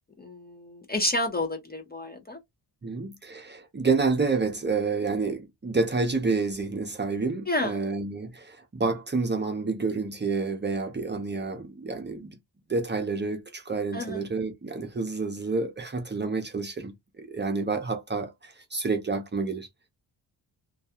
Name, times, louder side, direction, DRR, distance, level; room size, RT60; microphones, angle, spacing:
voice 1, 0.2-2.4 7.5-7.8 13.9-14.2, left 1 dB, 20° left, 0.5 m, -30 dB
voice 2, 2.8-12.3 12.7-19.7, right 4 dB, 25° right, 0.6 m, -29 dB
2.3 x 2.2 x 2.7 m
wide cardioid pair, 105°, 44 cm